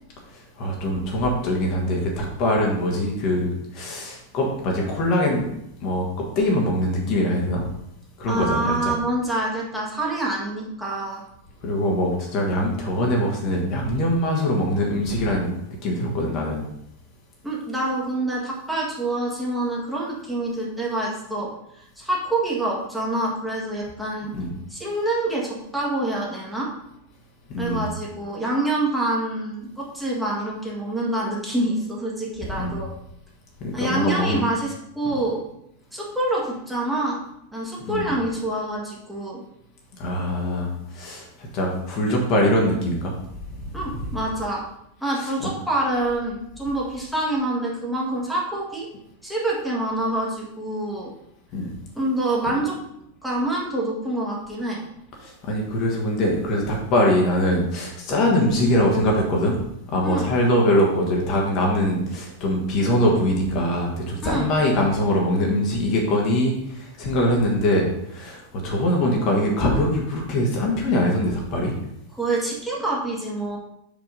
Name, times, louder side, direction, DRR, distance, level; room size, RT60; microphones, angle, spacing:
voice 1, 0.3-5.5 5.8-6.1 6.3-7.6 8.2-8.9 11.6-15.5 15.8-16.6 24.3-24.5 27.5-27.9 32.5-32.8 33.6-34.4 37.9-38.1 40.0-43.1 43.6-44.0 45.2-45.3 51.5-51.8 55.2-59.6 59.9-71.7, left 1 dB, 40° left, -1 dB, 1.5 m, -23 dB
voice 2, 8.3-11.2 17.4-21.5 22.0-24.3 24.7-26.7 27.6-32.9 33.7-35.4 35.9-37.2 37.5-39.4 43.7-44.6 45.0-48.9 49.2-51.1 52.0-52.8 53.2-54.8 60.0-60.3 64.2-64.5 72.1-73.6, right 2 dB, 5° right, -5 dB, 1.9 m, -26 dB
5.5 x 5.2 x 5.3 m, 0.78 s
figure-of-eight pair, 90°, 0 cm